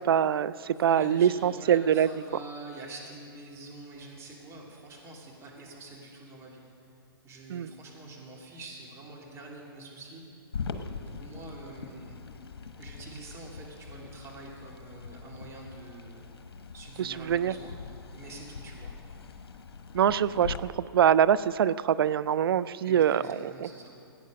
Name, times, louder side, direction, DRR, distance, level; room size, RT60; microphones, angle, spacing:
voice 1, 0.1-2.1 7.5-7.7 17.0-17.5 19.9-23.2, right 9 dB, 70° right, 17 dB, 0.4 m, -24 dB
voice 2, 0.7-6.6 7.2-10.2 11.1-12.1 12.8-16.2 16.7-17.7 18.1-19.0 22.8-23.9, right 2 dB, 20° right, -2 dB, 2.9 m, -45 dB
sound 1, 10.5-20.6, left 5 dB, 80° left, 1.1 m, -42 dB
16.5 x 9.3 x 6.4 m, 2.5 s
hypercardioid pair, 135°, 13 cm